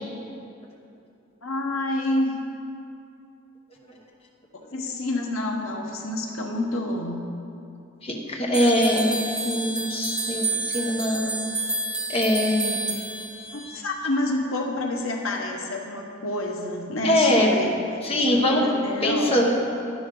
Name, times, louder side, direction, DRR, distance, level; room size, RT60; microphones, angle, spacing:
voice 1, 1.4-2.4 4.7-7.2 12.8-12.9 13.5-17.7 18.2-19.4, left 1 dB, 85° left, 1 dB, 1.2 m, -28 dB
voice 2, 8.0-11.4 12.1-13.0 17.0-17.5 18.0-18.6 19.0-19.5, left 1 dB, 30° left, -1 dB, 1.0 m, -23 dB
sound 1, 8.5-13.8, right 3 dB, 5° right, 0.9 m, -30 dB
11.0 x 11.0 x 3.9 m, 2.7 s
head